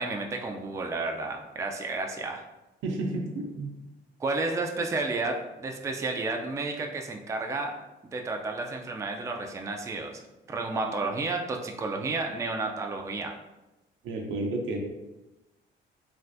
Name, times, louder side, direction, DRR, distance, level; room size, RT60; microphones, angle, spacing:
voice 1, 0.0-2.4 4.2-7.7 8.1-10.2 10.5-13.3, right 3 dB, 15° right, 2 dB, 0.3 m, -31 dB
voice 2, 2.8-3.7 14.0-14.8, right 2 dB, 75° right, 1 dB, 0.6 m, -31 dB
3.3 x 2.4 x 2.5 m, 1.0 s
cardioid pair, 90°, 20 cm